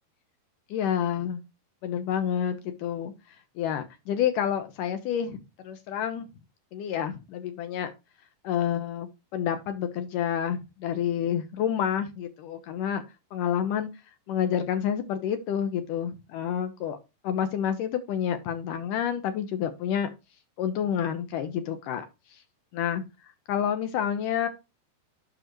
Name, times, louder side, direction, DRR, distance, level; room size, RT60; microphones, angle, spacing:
voice 1, 0.7-1.4 1.8-3.1 3.6-5.4 5.6-6.3 6.7-7.9 8.4-13.0 13.3-13.9 14.3-17.0 17.2-20.1 20.6-22.1 22.7-23.0 23.5-24.5, left 9 dB, 75° left, 2.0 m, -29 dB
10.5 x 6.4 x 3.0 m
omnidirectional pair, 4.6 m